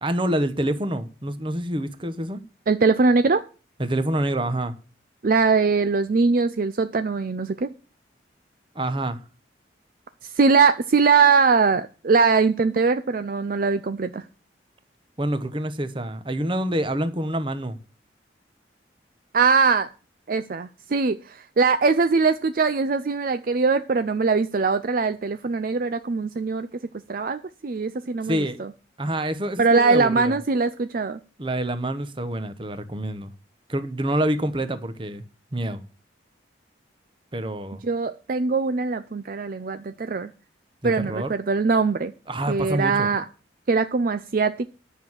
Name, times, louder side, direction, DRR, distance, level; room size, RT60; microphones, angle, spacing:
voice 1, 0.0-2.4 3.8-4.7 8.7-9.2 15.2-17.8 28.2-28.6 29.0-30.4 31.4-33.3 33.7-35.2 35.5-35.8 37.3-37.8 40.8-41.3 42.3-43.1, right 1 dB, 30° right, 1.0 m, -27 dB
voice 2, 2.7-3.4 5.2-7.7 10.2-14.2 19.3-19.9 20.3-26.7 27.1-28.7 29.6-31.2 37.8-40.3 40.8-42.1 42.5-43.2 43.7-44.7, right 4 dB, 50° right, 0.5 m, -21 dB
10.0 x 6.3 x 7.2 m
head